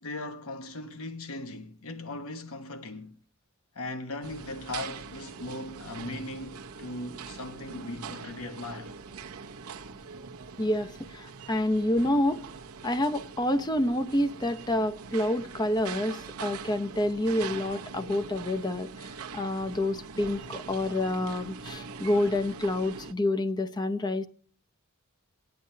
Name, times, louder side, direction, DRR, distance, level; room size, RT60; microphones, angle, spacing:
voice 1, 0.0-3.1 3.7-8.9, left 2 dB, 75° left, 1.2 m, -38 dB
sound 1, 4.2-23.1, right 5 dB, 85° right, 0.8 m, -43 dB
voice 2, 10.6-12.4 12.8-24.3, left 1 dB, 20° left, 0.6 m, -28 dB
19.0 x 9.7 x 2.8 m
head